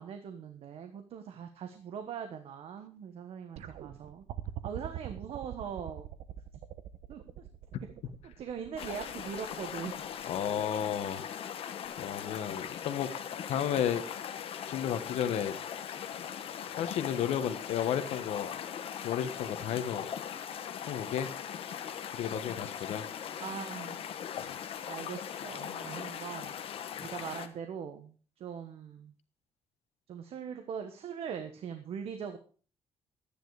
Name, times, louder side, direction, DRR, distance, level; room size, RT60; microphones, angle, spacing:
voice 1, 0.0-4.2 4.6-6.1 7.1-7.5 7.8-7.9 8.2-10.0 23.4-24.0 24.9-26.5 27.0-29.1 30.1-32.4, right 7 dB, 65° right, 7 dB, 1.3 m, -41 dB
sound 1, 3.6-10.7 11.8-11.9, right 11 dB, 90° right, 1.1 m, -44 dB
sound 2, 8.8-27.5, left 8 dB, 60° left, 1.2 m, -40 dB
voice 2, 10.3-11.2 12.0-13.1 13.5-14.0 14.7-15.5 16.8-18.5 19.0-20.0 20.9-21.3 22.1-23.0 24.4-24.5, left 9 dB, 90° left, 10 dB, 1.4 m, -32 dB
12.0 x 10.0 x 4.9 m, 0.40 s
cardioid pair, 140°, 11 cm